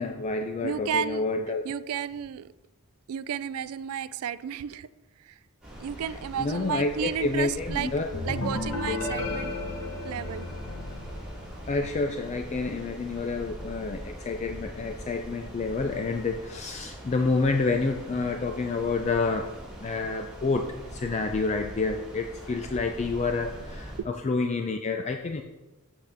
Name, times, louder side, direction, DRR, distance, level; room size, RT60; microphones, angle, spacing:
voice 1, 0.0-1.6 6.4-8.1 11.7-19.5 19.8-25.4, left 3 dB, 30° left, 5 dB, 0.4 m, -28 dB
voice 2, 0.6-1.3 1.6-2.5 3.1-4.9 5.2-5.4 5.8-7.9 8.2-9.5 10.0-10.5 24.0-24.1, right 8 dB, 70° right, 16 dB, 0.3 m, -32 dB
sound 1, 5.6-24.0, equal, 5° right, 2.6 m, -42 dB
sound 2, 8.1-11.8, left 3 dB, 70° left, 1.6 m, -33 dB
7.8 x 6.7 x 3.5 m, 1.1 s
head